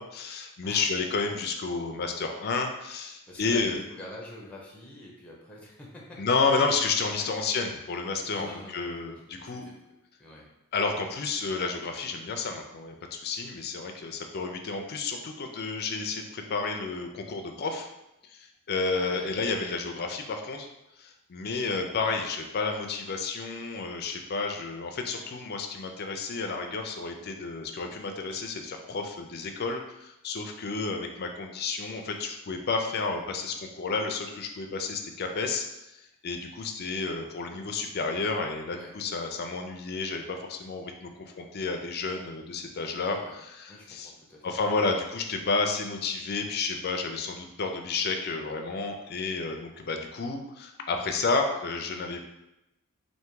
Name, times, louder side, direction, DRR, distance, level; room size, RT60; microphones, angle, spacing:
voice 1, 0.0-3.8 6.2-9.7 10.7-17.9 18.3-20.7 21.0-44.1 44.4-52.2, left 4 dB, 45° left, 4 dB, 0.5 m, -31 dB
voice 2, 3.3-6.3 7.2-7.3 8.3-9.7 10.2-10.5 18.9-19.4 38.7-38.9 43.0-43.3 43.7-44.6, left 1 dB, 5° left, -3 dB, 0.7 m, -45 dB
3.4 x 2.7 x 4.6 m, 0.90 s
head